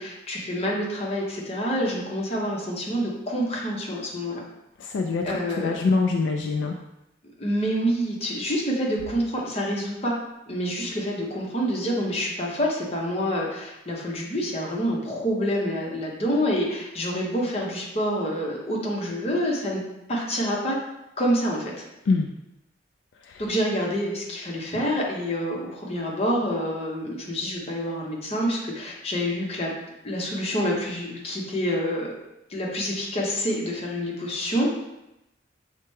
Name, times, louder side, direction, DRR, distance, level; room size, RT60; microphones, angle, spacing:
voice 1, 0.0-4.4 5.2-5.8 7.4-10.2 10.5-19.8 20.1-20.8 21.2-21.8 23.4-29.7 30.0-32.1 32.5-34.7, equal, 30° left, -3 dB, 0.8 m, -27 dB
voice 2, 4.8-5.2 5.6-6.7 22.1-22.3, left 4 dB, 70° left, 2 dB, 0.3 m, -23 dB
5.6 x 2.1 x 3.2 m, 0.90 s
head